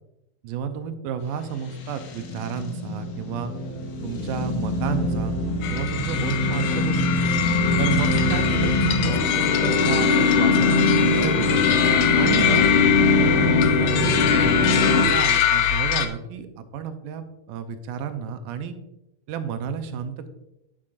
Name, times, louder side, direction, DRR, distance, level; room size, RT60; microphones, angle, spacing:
voice 1, 0.4-3.5 4.0-5.4 5.7-7.3 7.8-11.7 12.1-12.7 13.4-18.7 19.3-20.3, right 7 dB, 90° right, 9 dB, 2.2 m, -31 dB
sound 1, 1.7-15.0, left 2 dB, 65° left, 1.8 m, -22 dB
sound 2, 5.6-16.1, left 9 dB, 85° left, 1.5 m, -24 dB
9.1 x 7.3 x 2.5 m, 0.88 s
omnidirectional pair, 3.7 m